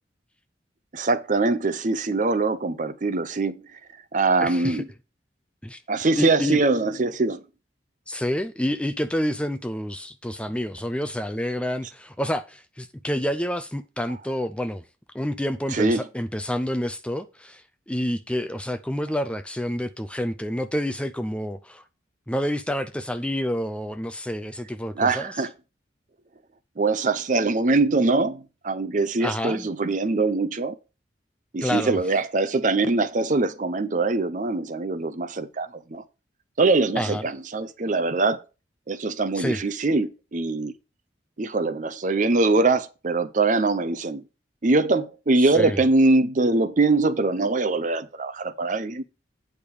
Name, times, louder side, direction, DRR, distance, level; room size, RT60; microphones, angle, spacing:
voice 1, 0.9-3.6 4.1-4.9 5.9-7.4 15.7-16.0 25.0-25.5 26.8-30.7 31.5-36.0 36.6-38.4 38.9-40.7 41.4-44.2 44.6-49.0, right 3 dB, 45° right, 0.6 m, -23 dB
voice 2, 4.4-4.8 5.6-5.8 6.2-6.6 8.1-14.8 15.1-21.8 22.3-25.4 29.2-29.7 31.6-32.0 37.0-37.2 39.3-39.6 45.5-45.8, equal, 5° left, 0.4 m, -28 dB
8.8 x 5.2 x 4.9 m
head